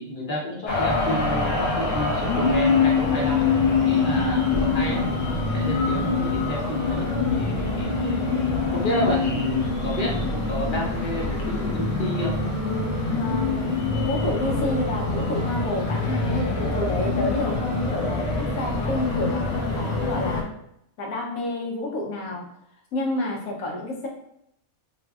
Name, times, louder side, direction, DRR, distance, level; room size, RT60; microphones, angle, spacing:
voice 1, 0.0-12.3 13.0-13.2, left 1 dB, 45° left, -4 dB, 0.8 m, -31 dB
sound 1, 0.7-20.4, left 3 dB, 65° left, 1.2 m, -24 dB
voice 2, 13.1-13.7 14.1-20.5 21.0-22.4 22.9-24.1, left 1 dB, 90° left, -1 dB, 1.3 m, -29 dB
3.5 x 3.1 x 2.3 m, 0.76 s
omnidirectional pair, 1.4 m